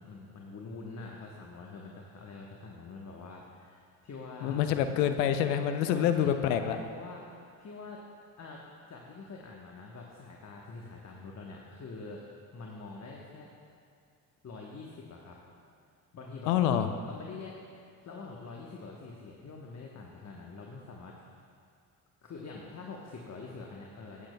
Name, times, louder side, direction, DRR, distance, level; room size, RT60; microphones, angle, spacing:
voice 1, 0.0-4.6 5.9-8.0 8.4-8.6 8.9-12.2 12.5-13.5 14.4-15.4 16.1-21.2 22.2-24.3, left 3 dB, 35° left, -1 dB, 1.1 m, -45 dB
voice 2, 4.4-6.8 16.5-16.9, left 9 dB, 85° left, 8 dB, 0.6 m, -27 dB
13.0 x 8.9 x 2.2 m, 2.4 s
hypercardioid pair, 60°, 48 cm